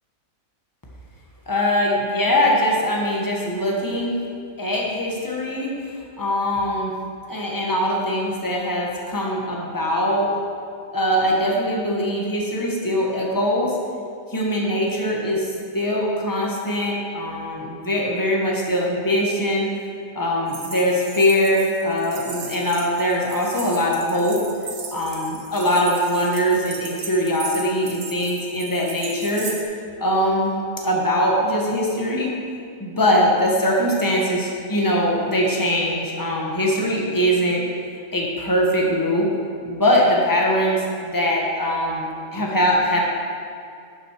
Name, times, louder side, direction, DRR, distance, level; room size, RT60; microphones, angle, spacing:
voice 1, 1.5-4.2 4.6-5.7 6.2-6.9 7.3-10.4 10.9-13.8 14.3-19.7 20.1-24.4 24.9-29.5 30.0-32.3 32.8-37.6 38.1-39.3 39.6-43.0, equal, 15° left, -2 dB, 1.3 m, -22 dB
sound 1, 20.5-29.6, right 5 dB, 50° right, 1.1 m, -37 dB
11.0 x 6.6 x 4.5 m, 2.4 s
omnidirectional pair, 1.4 m